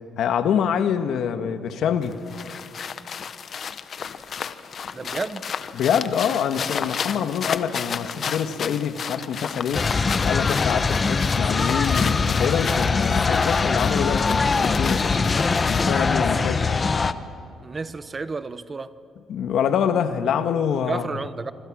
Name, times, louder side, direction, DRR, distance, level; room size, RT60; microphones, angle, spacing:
voice 1, 0.2-2.2 5.7-9.9 10.2-15.1 15.7-16.7 19.3-21.0, left 8 dB, 75° left, 1.6 m, -25 dB
sound 1, 2.0-16.1, left 7 dB, 55° left, 1.2 m, -33 dB
voice 2, 4.9-5.5 17.6-18.9 20.8-21.5, right 4 dB, 30° right, 1.0 m, -31 dB
sound 2, 9.7-17.1, left 4 dB, 30° left, 1.1 m, -22 dB
26.5 x 26.0 x 6.3 m
cardioid pair, 90°, 0 cm